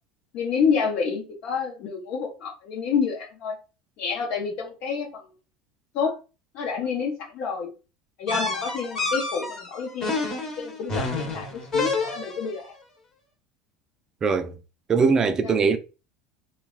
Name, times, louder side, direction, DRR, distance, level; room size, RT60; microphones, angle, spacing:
voice 1, 0.3-3.5 4.0-5.2 5.9-6.2 6.5-7.7 8.2-10.3 10.6-12.7 15.4-15.5, left 6 dB, 60° left, 0.8 m, -28 dB
sound 1, 8.3-12.6, left 3 dB, 30° left, 1.0 m, -29 dB
voice 2, 14.2-14.6 14.9-15.8, right 5 dB, 25° right, 0.4 m, -21 dB
3.3 x 2.3 x 2.3 m
supercardioid pair, 125°, 2 cm